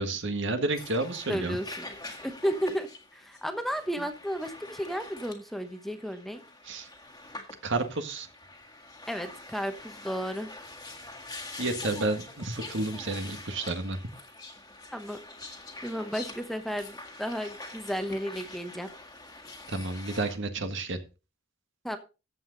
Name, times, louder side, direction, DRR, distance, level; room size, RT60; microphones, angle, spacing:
voice 1, 0.0-1.6 6.7-6.9 7.6-8.3 11.6-14.0 19.7-21.0, right 2 dB, 60° right, 8 dB, 1.7 m, -31 dB
sound 1, 0.7-20.4, left 2 dB, 20° left, 1.7 m, -45 dB
voice 2, 1.3-1.9 2.2-6.4 9.1-10.6 14.9-15.2 15.8-18.9 21.8-22.0, equal, ahead, 7 dB, 1.0 m, -33 dB
14.0 x 7.9 x 4.0 m, 0.31 s
head